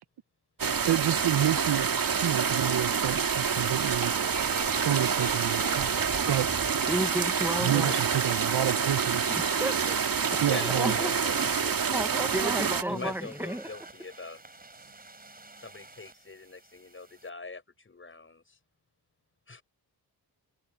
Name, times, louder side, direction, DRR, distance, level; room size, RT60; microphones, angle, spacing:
sound 1, 0.6-12.8, right 6 dB, 55° right, 2.3 m, -27 dB
voice 1, 0.9-4.1 4.7-6.0 6.3-6.5 7.6-9.3 10.4-11.0, right 12 dB, 75° right, 0.8 m, -29 dB
sound 2, 3.1-17.3, right 3 dB, 20° right, 4.2 m, -45 dB
voice 2, 6.9-7.9 9.3-10.0 10.6-13.7, right 1 dB, 5° right, 1.2 m, -33 dB
voice 3, 7.4-8.0 10.5-11.4 12.9-14.4 15.6-18.6 19.5-19.6, left 3 dB, 30° left, 7.0 m, -42 dB
wide cardioid pair, 140°, 40 cm